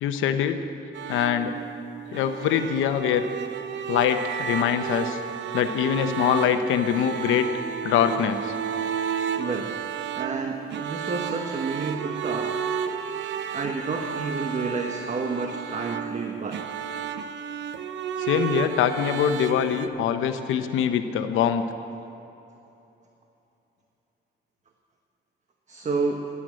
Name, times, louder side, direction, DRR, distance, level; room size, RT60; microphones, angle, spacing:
voice 1, 0.0-0.6 1.1-1.5 2.1-3.3 3.9-5.2 5.5-7.5 7.8-8.5 18.2-21.6, left 9 dB, 90° left, 9 dB, 0.9 m, -23 dB
sound 1, 0.9-19.9, right 7 dB, 65° right, 0.7 m, -32 dB
voice 2, 9.3-9.8 10.1-12.7 13.5-16.7 25.7-26.3, right 4 dB, 35° right, 3 dB, 1.1 m, -30 dB
11.5 x 11.0 x 7.7 m, 2.9 s
cardioid pair, 90°, 20 cm